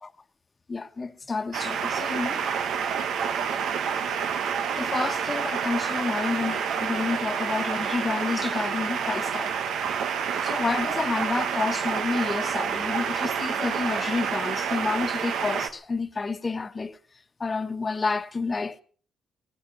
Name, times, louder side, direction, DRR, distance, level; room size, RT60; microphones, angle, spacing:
voice 1, 0.7-2.5 3.1-3.2 4.8-9.5 10.4-17.0 17.4-18.8, left 4 dB, 30° left, 1.3 m, -29 dB
sound 1, 1.5-15.7, right 7 dB, 75° right, 1.5 m, -28 dB
19.0 x 10.5 x 7.1 m
cardioid pair, 90°, 0 cm